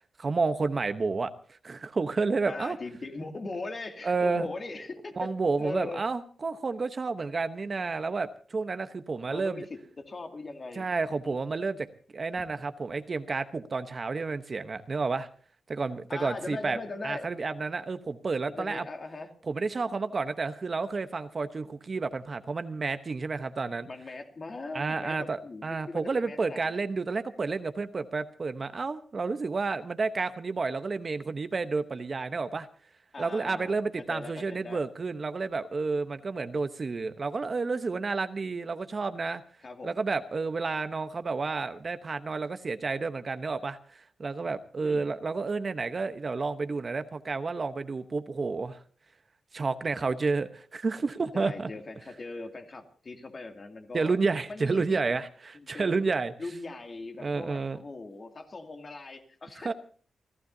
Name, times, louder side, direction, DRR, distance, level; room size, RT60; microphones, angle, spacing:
voice 1, 0.2-1.3 1.6-2.8 4.0-4.5 5.2-9.7 10.8-11.9 12.1-15.3 15.7-16.8 17.0-18.8 19.5-23.9 24.7-32.7 33.2-39.4 39.8-48.8 49.5-51.7 53.9-56.3 57.2-57.8 59.6-59.7, right 4 dB, 45° right, 10 dB, 1.0 m, -30 dB
voice 2, 2.4-5.3 5.6-6.0 9.3-10.9 11.2-11.4 16.1-17.3 18.5-19.3 23.9-26.8 33.1-33.8 34.1-34.8 39.6-40.0 44.8-45.1 51.3-54.1 54.5-55.1 55.5-56.0 56.4-59.7, left 3 dB, 45° left, 4 dB, 2.5 m, -40 dB
30.0 x 12.5 x 2.8 m, 0.44 s
cardioid pair, 65°, 0 cm